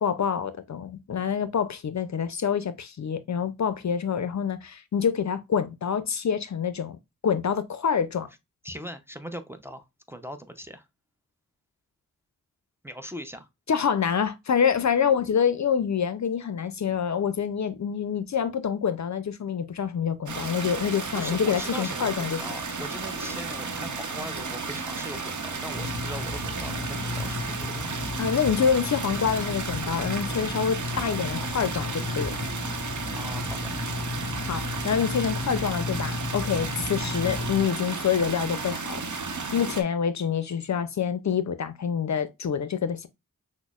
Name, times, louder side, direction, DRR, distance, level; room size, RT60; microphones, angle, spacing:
voice 1, 0.0-7.0 7.2-8.3 13.7-22.4 28.2-32.4 34.4-39.0 39.5-43.1, left 7 dB, 55° left, 0.5 m, -26 dB
voice 2, 8.6-10.9 12.8-13.5 21.1-28.0 33.1-33.7, equal, 5° right, 0.6 m, -40 dB
sound 1, 20.3-39.8, right 4 dB, 55° right, 0.8 m, -33 dB
sound 2, 23.0-24.4, left 2 dB, 35° right, 1.1 m, -49 dB
sound 3, 25.7-37.7, left 3 dB, 25° left, 1.6 m, -34 dB
6.0 x 2.1 x 2.3 m
cardioid pair, 45°, 35 cm